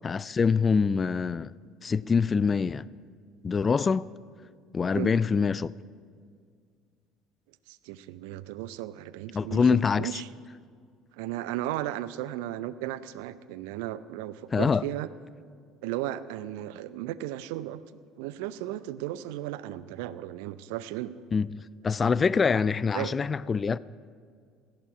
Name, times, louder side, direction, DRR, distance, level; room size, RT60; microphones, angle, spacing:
voice 1, 0.0-1.5 1.8-2.9 3.4-4.1 4.7-5.7 9.3-10.1 14.5-14.8 21.3-21.5 21.8-23.8, left 5 dB, 30° left, 0.3 m, -24 dB
voice 2, 7.7-10.3 11.1-15.1 15.8-21.1 22.9-23.2, right 14 dB, 65° right, 0.5 m, -35 dB
17.5 x 14.0 x 4.8 m
figure-of-eight pair, 65°, 0 cm